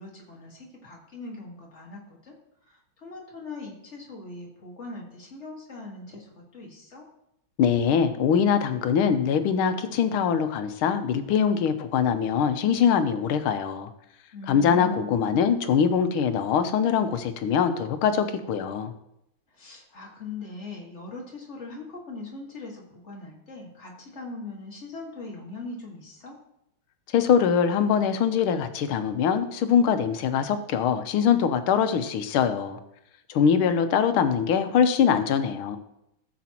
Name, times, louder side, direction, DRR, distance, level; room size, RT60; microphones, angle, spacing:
voice 1, 0.0-2.4 2.7-7.1 14.3-15.6 19.5-26.4, left 3 dB, 35° left, -2 dB, 2.0 m, -41 dB
voice 2, 7.6-13.9 14.5-18.9 27.1-32.8 33.3-35.8, left 7 dB, 85° left, 9 dB, 1.6 m, -23 dB
14.5 x 7.2 x 2.9 m, 0.80 s
omnidirectional pair, 2.3 m